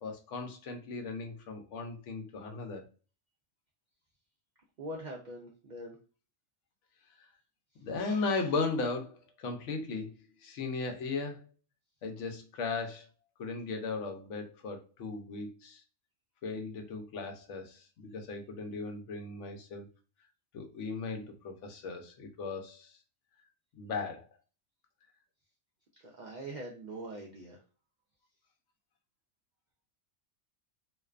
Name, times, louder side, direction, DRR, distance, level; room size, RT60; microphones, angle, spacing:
voice 1, 0.0-2.8 7.8-10.1 10.4-11.4 12.0-13.1 13.4-15.8 16.4-19.9 20.5-22.9 23.8-24.3, left 4 dB, 75° left, 5 dB, 0.9 m, -37 dB
voice 2, 4.8-6.0 26.0-27.6, right 1 dB, 65° right, -1 dB, 0.4 m, -43 dB
2.5 x 2.2 x 2.3 m, 0.36 s
omnidirectional pair, 1.3 m